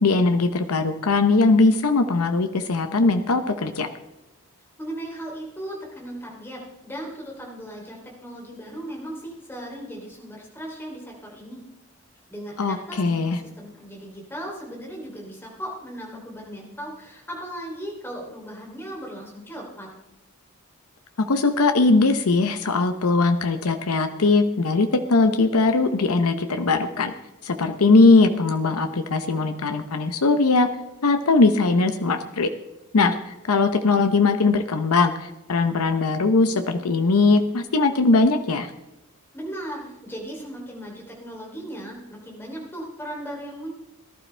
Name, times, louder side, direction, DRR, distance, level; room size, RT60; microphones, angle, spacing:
voice 1, 0.0-3.9 12.6-13.4 21.3-27.1 27.4-30.7 31.0-32.5 32.9-38.7, left 3 dB, 85° left, 8 dB, 0.8 m, -20 dB
voice 2, 4.8-11.6 12.3-19.9 39.3-43.7, right 1 dB, 10° left, -2 dB, 3.1 m, -37 dB
18.5 x 12.0 x 3.3 m, 0.98 s
head